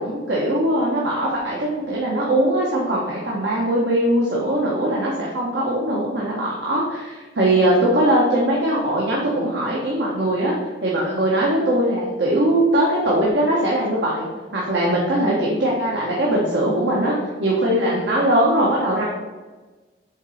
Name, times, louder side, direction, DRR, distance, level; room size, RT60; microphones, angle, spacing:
voice 1, 0.0-10.5 10.8-14.3 14.5-19.1, right 1 dB, 85° right, -4 dB, 1.3 m, -21 dB
7.4 x 4.0 x 4.9 m, 1.3 s
head